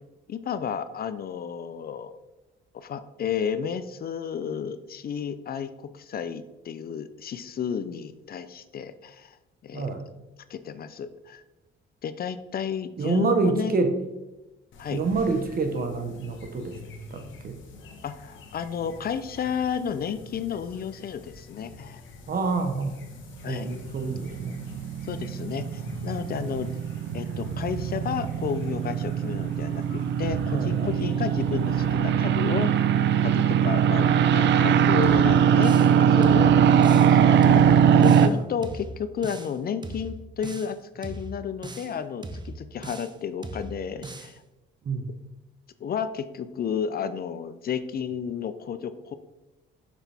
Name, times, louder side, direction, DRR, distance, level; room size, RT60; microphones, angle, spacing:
voice 1, 0.3-2.1 2.7-9.4 9.6-9.9 10.5-11.4 12.0-13.8 14.8-15.0 18.0-22.0 23.4-23.7 25.1-26.8 27.1-32.8 33.2-36.5 36.8-44.4 45.8-49.1, left 7 dB, 50° left, 12 dB, 0.5 m, -32 dB
voice 2, 9.7-10.0 13.0-13.9 14.9-16.8 17.1-17.6 22.3-23.0 23.5-24.6 30.5-30.9 38.1-38.4 44.8-45.1, right 4 dB, 50° right, 7 dB, 1.1 m, -27 dB
sound 1, 14.7-31.9, left 2 dB, 75° left, 1.3 m, -44 dB
sound 2, 23.6-38.3, right 8 dB, 65° right, 0.5 m, -21 dB
sound 3, 35.0-36.0 36.2-37.1 37.4-38.3 38.6-39.5 39.8-40.7 41.0-41.9 42.2-43.2 43.4-44.3, right 2 dB, 20° right, 0.7 m, -39 dB
6.9 x 6.0 x 3.5 m, 1.0 s
cardioid pair, 90°, 20 cm